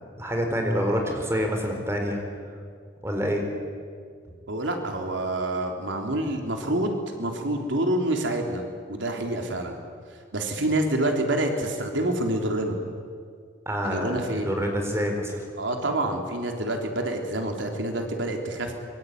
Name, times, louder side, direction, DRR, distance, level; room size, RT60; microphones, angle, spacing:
voice 1, 0.2-2.2 3.0-3.4 13.7-15.5, equal, 15° right, 2 dB, 4.4 m, -27 dB
voice 2, 4.5-9.8 10.3-12.8 13.8-14.5 15.6-18.7, right 1 dB, 85° right, 3 dB, 3.6 m, -27 dB
25.5 x 23.5 x 9.6 m, 2.1 s
head